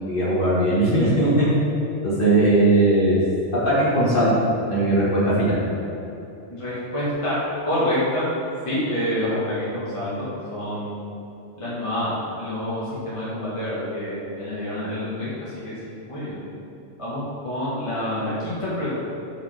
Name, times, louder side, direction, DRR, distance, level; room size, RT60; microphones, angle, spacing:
voice 1, 0.1-1.3 2.0-3.2 3.6-4.3 4.7-5.6, right 1 dB, 45° left, -10 dB, 2.1 m, -19 dB
voice 2, 6.5-7.3 7.6-8.2 8.6-10.9 11.6-15.7 16.1-16.4 17.0-18.9, left 1 dB, 25° left, -10 dB, 1.8 m, -27 dB
5.7 x 4.8 x 5.8 m, 2.9 s
omnidirectional pair, 1.2 m